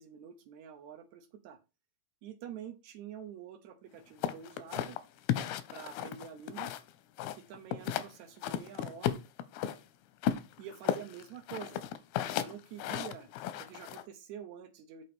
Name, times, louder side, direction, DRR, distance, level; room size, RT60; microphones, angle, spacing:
voice 1, 0.0-1.6 2.2-5.0 5.7-6.7 7.3-9.2 10.6-11.8 12.4-13.3 13.6-15.0, right 8 dB, 90° right, 5 dB, 1.6 m, -47 dB
sound 1, 4.2-6.9 7.2-8.1 8.4-9.8 10.2-14.0, left 10 dB, 85° left, 2.5 m, -34 dB
8.3 x 4.3 x 5.1 m, 0.28 s
omnidirectional pair, 4.5 m